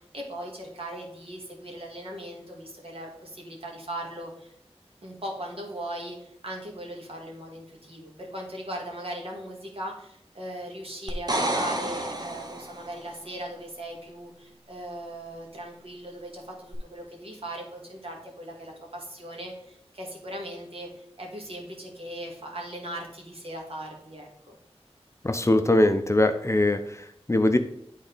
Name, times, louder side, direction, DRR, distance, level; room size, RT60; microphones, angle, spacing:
voice 1, 0.0-4.5 5.0-24.6, right 1 dB, 60° right, 0 dB, 1.8 m, -39 dB
sound 1, 11.1-13.0 16.7-16.8, right 1 dB, 40° right, 0.9 m, -30 dB
voice 2, 25.2-27.6, left 1 dB, 25° left, 7 dB, 0.5 m, -22 dB
9.2 x 4.0 x 3.9 m, 0.70 s
wide cardioid pair, 60°, 11 cm